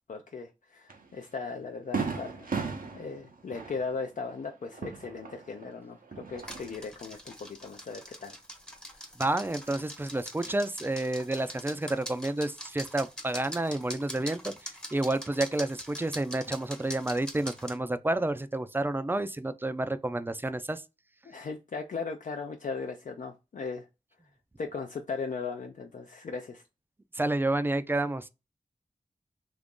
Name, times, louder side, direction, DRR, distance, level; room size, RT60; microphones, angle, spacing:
voice 1, 0.1-2.5 2.9-8.4 21.2-23.9 24.6-26.6, left 4 dB, 60° left, 0.4 m, -37 dB
Fireworks, 0.9-1.0 1.4-1.5 1.9-5.7 6.0-6.9, right 5 dB, 75° right, 0.6 m, -36 dB
sound 1, 6.4-17.8, equal, 5° left, 0.7 m, -43 dB
voice 2, 9.2-20.8 27.1-28.3, right 2 dB, 15° right, 0.3 m, -30 dB
2.8 x 2.5 x 3.6 m
cardioid pair, 55°, 15 cm